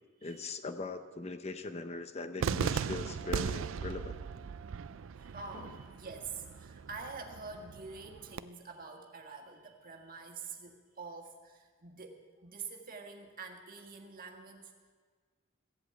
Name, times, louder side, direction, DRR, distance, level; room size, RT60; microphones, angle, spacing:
voice 1, 0.2-4.2 5.5-5.8, left 3 dB, 30° left, 9 dB, 0.6 m, -40 dB
Cheering / Fireworks, 2.4-8.4, right 6 dB, 60° right, 0.4 m, -38 dB
voice 2, 5.1-14.7, right 4 dB, 40° right, 3 dB, 1.6 m, -46 dB
15.5 x 8.0 x 8.1 m, 1.5 s
head